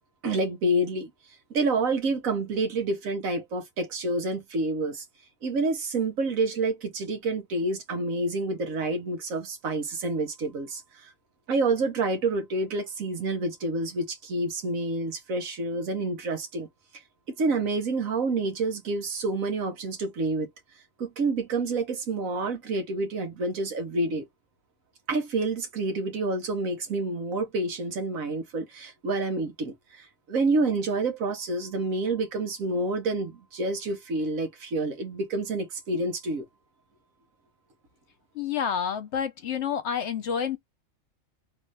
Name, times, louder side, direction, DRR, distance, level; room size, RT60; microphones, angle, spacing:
voice 1, 0.2-1.1 1.5-5.0 5.4-11.1 11.5-16.7 17.4-20.5 21.0-24.2 25.1-36.5, right 2 dB, 80° right, 1.4 m, -28 dB
voice 2, 38.3-40.6, left 7 dB, 60° left, 1.1 m, -29 dB
3.3 x 2.6 x 3.3 m
omnidirectional pair, 1.4 m